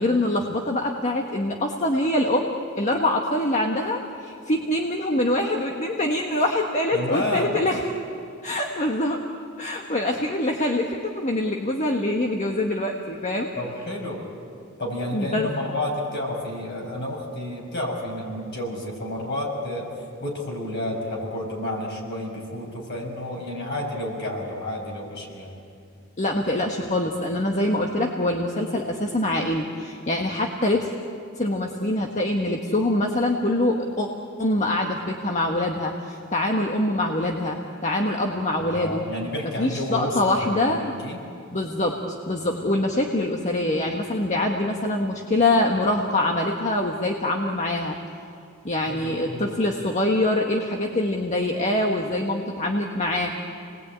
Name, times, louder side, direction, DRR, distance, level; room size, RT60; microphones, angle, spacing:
voice 1, 0.0-7.8 8.4-9.2 9.6-13.5 15.1-15.5 26.2-30.9 31.3-34.1 34.4-39.0 39.6-40.9 41.5-42.0 42.2-48.0 48.6-53.3, left 1 dB, 35° left, 1 dB, 1.6 m, -24 dB
voice 2, 6.9-7.5 13.5-14.2 14.8-19.9 20.2-25.6 38.5-41.2 48.9-49.6, left 1 dB, 55° left, 0 dB, 6.3 m, -30 dB
29.5 x 20.0 x 8.9 m, 2.5 s
head